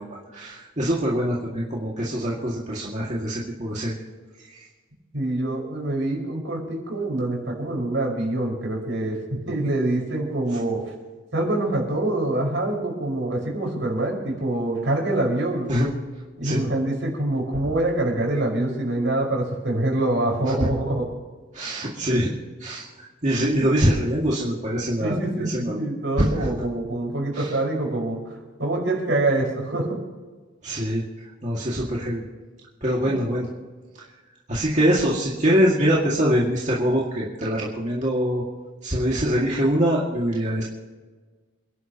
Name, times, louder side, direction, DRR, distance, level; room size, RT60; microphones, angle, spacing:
voice 1, 0.0-4.0 4.4-4.6 15.7-15.9 16.4-16.6 21.5-22.3 22.6-22.9 23.2-25.8 26.2-26.5 27.3-27.6 30.6-31.0 31.4-32.2 32.8-33.5 34.5-38.4 38.8-40.6, equal, 40° right, -5 dB, 2.1 m, -23 dB
voice 2, 5.1-10.8 11.3-15.7 16.4-21.1 25.0-30.0 33.0-33.2, right 2 dB, 70° right, -1 dB, 5.1 m, -25 dB
28.5 x 11.5 x 3.0 m, 1.4 s
head